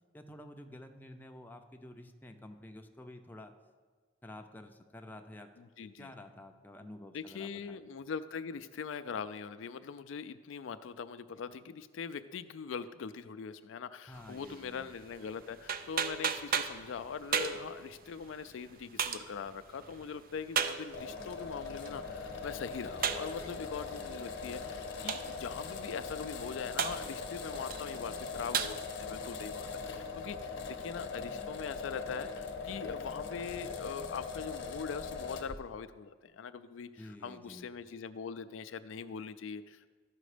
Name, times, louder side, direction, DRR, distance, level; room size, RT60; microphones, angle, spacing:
voice 1, 0.1-3.5 4.2-5.5 5.8-7.9 14.1-14.9 37.0-37.7, left 1 dB, 10° left, 5 dB, 0.6 m, -50 dB
voice 2, 5.6-6.1 7.1-39.9, left 6 dB, 85° left, 12 dB, 0.4 m, -42 dB
sound 1, 14.1-28.7, right 7 dB, 50° right, 0.5 m, -39 dB
sound 2, 20.9-35.6, left 4 dB, 70° left, 0.9 m, -41 dB
12.5 x 5.1 x 5.0 m, 1.4 s
head